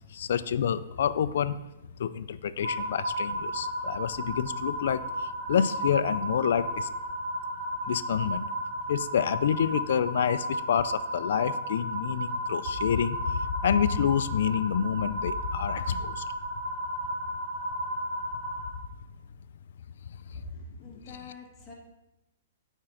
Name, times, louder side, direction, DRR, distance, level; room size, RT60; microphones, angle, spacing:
voice 1, 0.1-1.6 2.0-6.9 7.9-8.5 8.9-16.2 20.3-20.4, left 8 dB, 70° left, 12 dB, 0.3 m, -28 dB
sound 1, 2.6-18.7, equal, 65° right, 2.3 m, -34 dB
voice 2, 20.2-21.7, left 3 dB, 15° left, -4 dB, 1.5 m, -44 dB
8.8 x 4.4 x 3.8 m, 0.95 s
hypercardioid pair, 160°, 0 cm